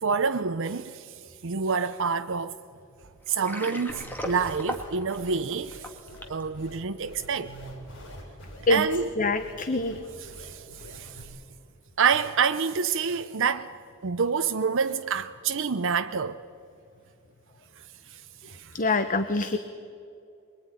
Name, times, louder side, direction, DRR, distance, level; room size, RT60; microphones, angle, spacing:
voice 1, 0.0-2.6 3.3-5.9 6.3-7.5 8.7-9.1 10.2-11.3 12.0-13.7 14.0-16.4 18.1-18.7, right 6 dB, 60° right, 0.7 m, -27 dB
Water, 3.3-6.4, left 1 dB, 10° left, 2.3 m, -37 dB
sound 1, 3.9-11.2, equal, 60° left, 7.1 m, -45 dB
voice 2, 9.2-10.0 18.7-19.6, left 2 dB, 40° left, 1.1 m, -24 dB
24.0 x 22.0 x 9.9 m
head